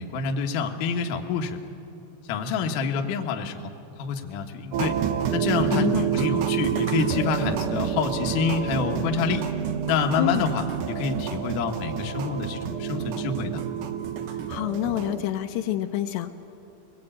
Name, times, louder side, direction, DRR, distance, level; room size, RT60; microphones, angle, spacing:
voice 1, 0.0-1.6 2.2-3.7 4.0-5.0 5.3-9.5 9.9-13.6, left 6 dB, 65° left, 3 dB, 2.2 m, -27 dB
sound 1, 4.7-15.2, right 9 dB, 80° right, 1.8 m, -28 dB
voice 2, 5.7-6.1 10.2-10.5 14.5-16.3, left 13 dB, 80° left, 6 dB, 2.9 m, -27 dB
23.5 x 20.0 x 8.8 m, 2.7 s
omnidirectional pair, 5.1 m